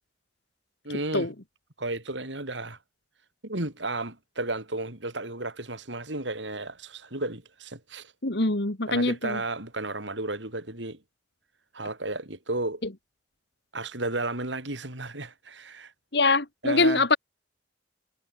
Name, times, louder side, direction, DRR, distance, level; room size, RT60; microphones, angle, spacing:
voice 1, 0.8-1.3 1.8-2.8 3.4-8.1 8.9-11.0 11.7-12.8 13.7-15.9 16.6-17.0, right 2 dB, 75° right, 5.5 m, -33 dB
voice 2, 8.2-9.4 16.1-17.2, left 3 dB, 65° left, 2.1 m, -23 dB
head